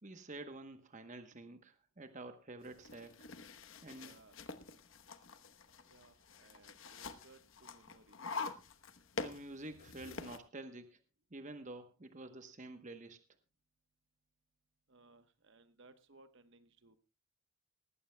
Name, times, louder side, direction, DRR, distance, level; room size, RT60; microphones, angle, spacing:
voice 1, 0.0-3.1 3.8-4.2 9.2-11.0 11.3-13.2, right 2 dB, 35° right, 8 dB, 1.0 m, -49 dB
sound 1, 2.6-10.4, left 4 dB, 65° left, 1.0 m, -46 dB
voice 2, 4.0-4.4 5.8-8.2 14.9-17.0, right 3 dB, 55° right, 10 dB, 1.1 m, -63 dB
19.5 x 15.0 x 2.2 m, 0.30 s
head